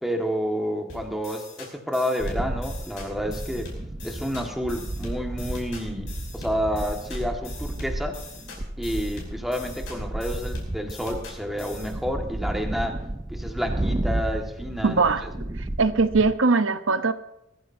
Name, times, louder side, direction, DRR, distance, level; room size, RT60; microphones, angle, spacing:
voice 1, 0.0-3.7 4.0-8.2 8.8-13.0 13.3-15.2, equal, ahead, 2 dB, 1.8 m, -30 dB
sound 1, 0.9-11.9, left 3 dB, 60° left, 5.3 m, -43 dB
sound 2, 2.2-16.4, right 1 dB, 20° right, 0.5 m, -32 dB
voice 2, 14.8-15.2 15.8-17.1, right 4 dB, 75° right, 10 dB, 0.9 m, -20 dB
21.5 x 14.5 x 2.8 m, 0.83 s
head